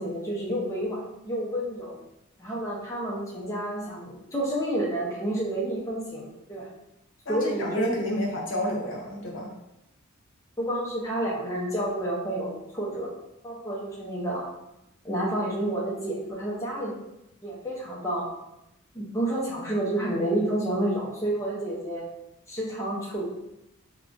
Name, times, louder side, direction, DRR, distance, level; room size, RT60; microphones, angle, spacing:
voice 1, 0.0-1.9 2.4-6.7 7.3-8.2 10.6-13.1 13.4-14.5 15.0-17.0 17.4-18.3 18.9-22.1 22.5-23.2, right 1 dB, 15° left, -5 dB, 0.5 m, -30 dB
voice 2, 7.3-9.5, left 1 dB, 65° left, -3 dB, 0.8 m, -29 dB
2.4 x 2.2 x 3.6 m, 0.87 s
head